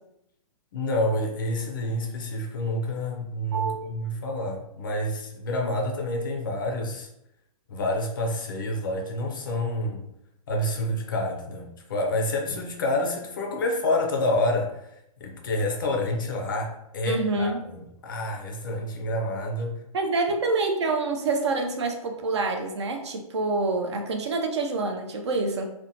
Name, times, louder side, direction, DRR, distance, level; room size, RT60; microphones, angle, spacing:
voice 1, 0.7-7.1 7.7-10.1 10.5-14.8 15.2-19.8, left 1 dB, 35° left, 1 dB, 0.4 m, -28 dB
voice 2, 3.5-3.8 17.1-17.6 19.9-25.7, right 3 dB, 50° right, 3 dB, 0.4 m, -27 dB
2.6 x 2.1 x 2.6 m, 0.81 s
hypercardioid pair, 165°, 18 cm